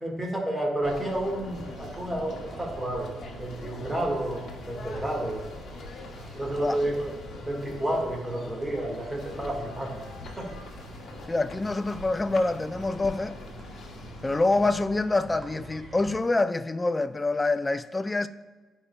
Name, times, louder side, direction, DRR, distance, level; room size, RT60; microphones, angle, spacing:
voice 1, 0.0-5.4 6.3-7.1 7.4-10.0 10.4-10.5, right 1 dB, 10° right, 1.6 m, -30 dB
sound 1, 0.8-14.7, left 3 dB, 60° left, 1.0 m, -43 dB
sound 2, 1.5-16.2, right 2 dB, 30° right, 1.4 m, -46 dB
voice 2, 11.3-13.4 14.2-18.3, left 2 dB, 20° left, 0.3 m, -26 dB
11.5 x 4.9 x 2.2 m
cardioid pair, 90°, 0 cm